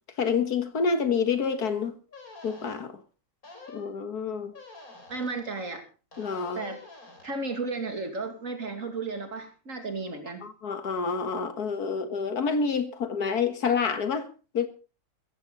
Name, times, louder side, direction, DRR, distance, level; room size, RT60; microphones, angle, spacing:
voice 1, 0.2-2.0 2.4-3.0 3.7-4.5 6.2-6.6 10.4-14.7, left 5 dB, 80° left, 2.1 m, -28 dB
sound 1, 1.4-1.5 2.1-2.8 3.4-3.9 4.5-5.4 6.1-7.3, left 3 dB, 65° left, 4.4 m, -47 dB
voice 2, 5.1-5.8 6.5-6.8 7.2-10.5, right 3 dB, 55° right, 2.9 m, -34 dB
16.0 x 15.0 x 4.0 m
omnidirectional pair, 1.6 m